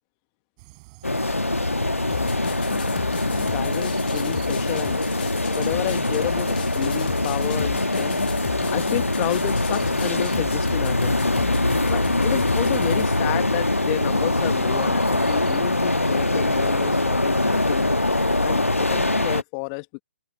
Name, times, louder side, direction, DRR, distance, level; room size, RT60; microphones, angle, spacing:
sound 1, 0.6-19.3, right 25 dB, 25° right, 7.4 m, -47 dB
sound 2, 1.0-19.4, left 2 dB, 80° left, 1.4 m, -23 dB
sound 3, 2.1-13.1, left 10 dB, 40° left, 0.6 m, -35 dB
voice 1, 3.2-5.0 5.5-8.2 8.7-11.3 11.9-17.9 18.4-20.0, left 37 dB, 25° left, 1.6 m, -31 dB
open air
figure-of-eight pair, 130°, 7 cm